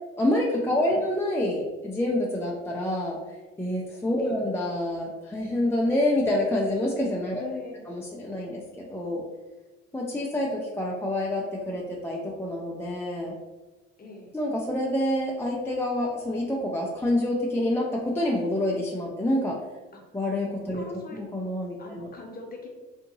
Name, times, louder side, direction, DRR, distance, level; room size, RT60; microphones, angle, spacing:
voice 1, 0.2-3.2 3.6-7.4 7.9-9.2 9.9-13.3 14.3-19.5 20.1-20.8 21.1-22.1, left 1 dB, 10° left, -3 dB, 0.4 m, -27 dB
voice 2, 7.4-7.9 14.0-14.3 19.9-20.0 20.7-21.2 21.8-22.7, left 3 dB, 30° left, 0 dB, 0.8 m, -40 dB
2.8 x 2.6 x 2.6 m, 1.2 s
hypercardioid pair, 60°, 32 cm